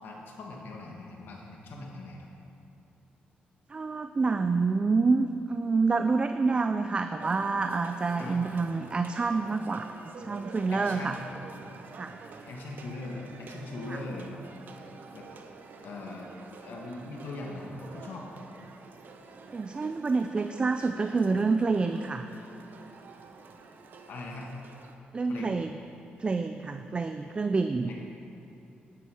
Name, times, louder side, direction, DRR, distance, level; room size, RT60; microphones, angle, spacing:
voice 1, 0.0-2.3 8.2-8.5 10.7-11.3 12.5-14.4 15.1-15.3 15.8-16.3 16.6-18.3 24.1-24.5 25.3-25.6 27.2-27.3 27.9-28.0, left 2 dB, 75° left, -1 dB, 1.6 m, -40 dB
voice 2, 3.7-9.9 10.2-11.2 11.9-12.1 13.9-14.0 19.5-22.3 25.1-25.7 26.2-27.9, right 4 dB, 30° right, 8 dB, 0.4 m, -27 dB
sound 1, 7.2-25.0, right 4 dB, 60° right, 0.9 m, -48 dB
11.5 x 10.0 x 4.9 m, 3.0 s
cardioid pair, 100°, 4 cm